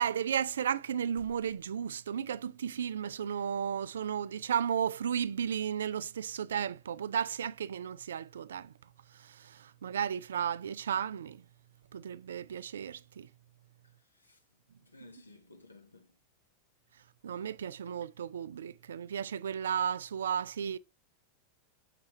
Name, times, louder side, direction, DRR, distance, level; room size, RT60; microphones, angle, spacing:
voice 1, 0.0-8.7 9.2-11.4 11.9-13.3 17.2-20.8, right 8 dB, 65° right, 0.4 m, -34 dB
voice 2, 13.8-16.2, left 2 dB, 80° left, 1.4 m, -58 dB
6.7 x 6.6 x 3.1 m
figure-of-eight pair, 90°, 0 cm